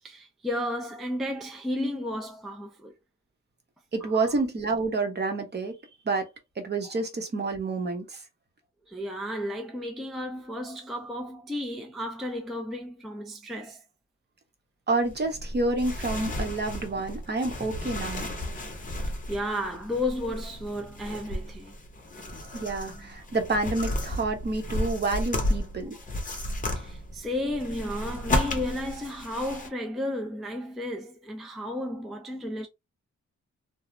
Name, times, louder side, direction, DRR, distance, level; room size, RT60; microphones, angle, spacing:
voice 1, 0.0-2.9 4.0-4.3 8.9-13.8 18.9-21.8 26.8-32.7, left 1 dB, ahead, 0.3 m, -33 dB
voice 2, 3.9-5.8 6.0-6.3 6.6-8.2 14.9-18.3 22.5-26.0, right 3 dB, 35° right, 0.7 m, -28 dB
sound 1, 15.0-29.7, left 1 dB, 25° left, 0.7 m, -33 dB
2.4 x 2.0 x 3.0 m
wide cardioid pair, 130°, 31 cm